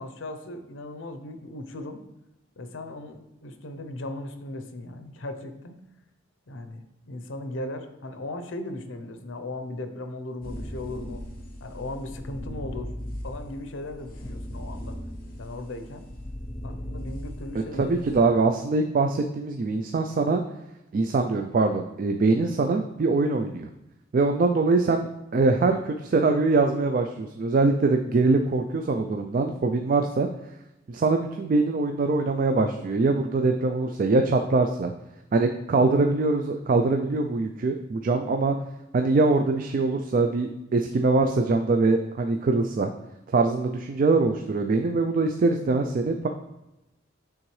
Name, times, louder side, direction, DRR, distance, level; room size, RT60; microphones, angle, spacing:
voice 1, 0.0-2.0 2.6-5.8 6.5-11.2 11.6-12.9 13.2-15.0 15.4-16.1 16.6-18.1, left 2 dB, 75° left, 8 dB, 0.7 m, -37 dB
sound 1, 10.4-18.2, equal, 45° left, 0.9 m, -38 dB
voice 2, 17.7-20.4 20.9-23.7 24.1-30.3 30.9-34.9 35.3-38.6 38.9-42.9 43.3-46.3, right 3 dB, 45° right, 5 dB, 0.3 m, -23 dB
8.7 x 3.6 x 3.2 m, 0.94 s
head